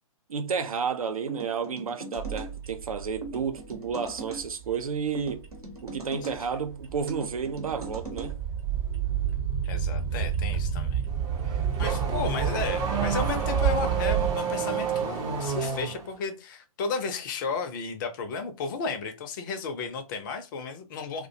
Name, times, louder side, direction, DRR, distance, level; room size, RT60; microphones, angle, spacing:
voice 1, 0.3-5.4 5.8-8.4, right 6 dB, 70° right, 0.5 m, -31 dB
sound 1, 1.3-2.5 3.2-4.4 5.1-6.4 7.1-8.3, right 2 dB, 90° right, 0.9 m, -40 dB
sound 2, 2.2-14.3, right 8 dB, 45° right, 0.9 m, -30 dB
voice 2, 6.2-6.6 9.7-11.0 11.5-21.3, left 5 dB, 35° left, 0.5 m, -34 dB
Car / Accelerating revving vroom, 11.1-16.1, right 5 dB, 20° right, 0.4 m, -30 dB
2.3 x 2.1 x 2.6 m
figure-of-eight pair, 120°, 19 cm